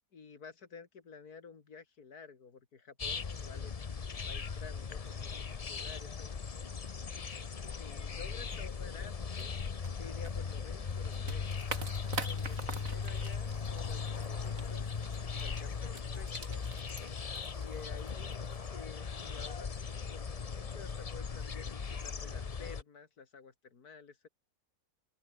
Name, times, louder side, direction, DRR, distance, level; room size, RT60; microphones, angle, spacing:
voice 1, 0.1-3.7 4.1-6.7 7.7-9.6 9.9-11.7 12.3-14.9 15.4-16.7 17.5-18.3 18.7-19.7 20.1-24.3, left 5 dB, 80° left, 2.8 m, -52 dB
sound 1, 3.0-22.8, left 5 dB, 35° left, 0.7 m, -38 dB
sound 2, 8.4-18.7, right 3 dB, 60° right, 3.5 m, -47 dB
open air
omnidirectional pair, 1.6 m